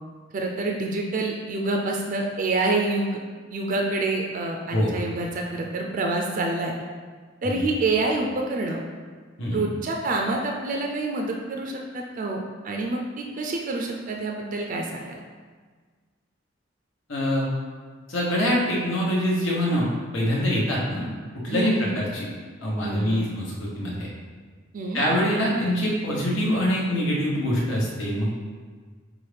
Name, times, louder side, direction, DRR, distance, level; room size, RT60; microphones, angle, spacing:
voice 1, 0.3-3.2 3.5-6.7 7.4-8.8 9.5-15.2 21.5-22.0 22.8-23.2 24.7-25.0, right 2 dB, 45° right, 1 dB, 0.4 m, -27 dB
voice 2, 17.1-17.5 18.1-19.9 20.1-21.0 21.4-22.3 22.6-24.1 24.9-28.3, equal, 85° left, -4 dB, 1.1 m, -24 dB
5.5 x 2.5 x 3.3 m, 1.5 s
head